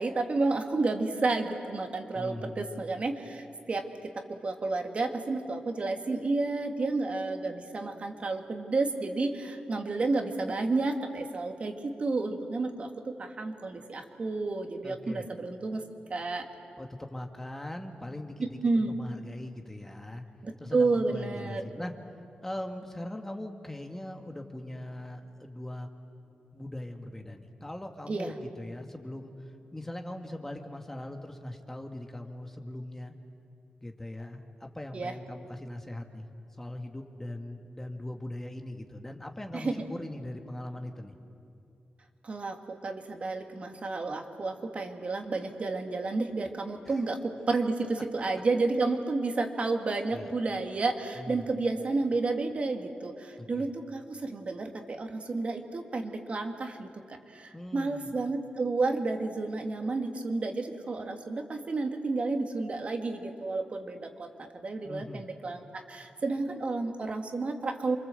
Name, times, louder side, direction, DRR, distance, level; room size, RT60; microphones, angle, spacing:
voice 1, 0.0-3.9 4.1-15.8 16.1-16.5 18.4-18.9 20.4-21.6 28.1-28.3 34.9-35.1 39.5-39.8 42.2-68.0, right 3 dB, 45° right, 4 dB, 2.1 m, -31 dB
voice 2, 2.1-2.7 14.8-15.2 16.8-18.5 18.8-20.2 20.6-21.9 22.4-25.9 26.5-33.1 33.8-36.3 36.6-41.1 46.9-47.0 50.1-50.3 51.2-51.4 53.4-53.7 57.5-58.1 64.8-65.2, left 1 dB, 10° left, 4 dB, 1.7 m, -40 dB
28.0 x 24.5 x 7.8 m, 2.6 s
wide cardioid pair, 110°, 3 cm